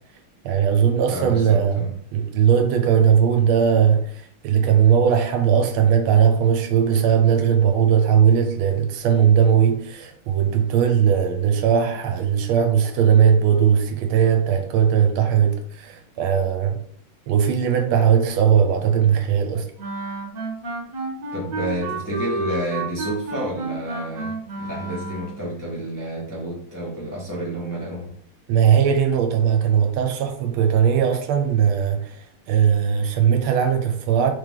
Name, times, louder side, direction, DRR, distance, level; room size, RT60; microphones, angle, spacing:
voice 1, 0.4-4.1 4.4-16.8 17.3-19.7 28.5-32.2 32.5-34.3, right 8 dB, 80° right, 1.4 m, -19 dB
voice 2, 1.1-1.9 21.3-28.1, right 1 dB, 20° left, 0.5 m, -30 dB
Wind instrument woodwind instrument, 19.8-25.4, right 3 dB, 50° right, 1.1 m, -30 dB
3.4 x 3.4 x 3.6 m
omnidirectional pair, 2.4 m